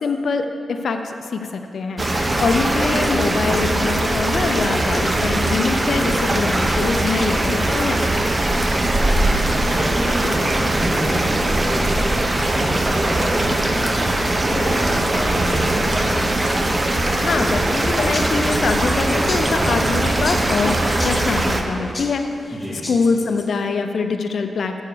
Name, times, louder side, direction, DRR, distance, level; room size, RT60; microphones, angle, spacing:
voice 1, 0.0-8.0 17.2-24.8, left 4 dB, 70° left, 6 dB, 0.6 m, -24 dB
sound 1, 2.0-21.6, right 1 dB, 35° right, 0.8 m, -20 dB
voice 2, 9.7-11.9 12.4-14.0 14.4-16.2 22.5-22.8, equal, 20° right, -9 dB, 2.1 m, -27 dB
sound 2, 17.9-23.5, left 2 dB, 30° left, 0.9 m, -35 dB
6.7 x 6.2 x 6.7 m, 2.6 s
cardioid pair, 50°, 0 cm